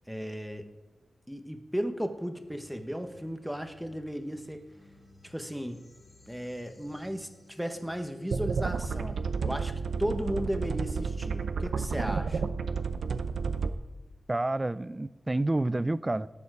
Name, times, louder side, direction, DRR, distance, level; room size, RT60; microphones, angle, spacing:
voice 1, 0.1-0.7 1.3-4.6 5.2-5.8 6.3-9.7 10.0-12.4, equal, ahead, 6 dB, 1.1 m, -35 dB
sound 1, 2.5-11.6, left 3 dB, 40° left, 2.5 m, -58 dB
sound 2, 8.3-13.7, right 5 dB, 80° right, 0.6 m, -31 dB
voice 2, 14.3-16.3, right 2 dB, 20° right, 17 dB, 0.4 m, -29 dB
18.0 x 7.1 x 4.8 m, 1.2 s
wide cardioid pair, 105°, 0 cm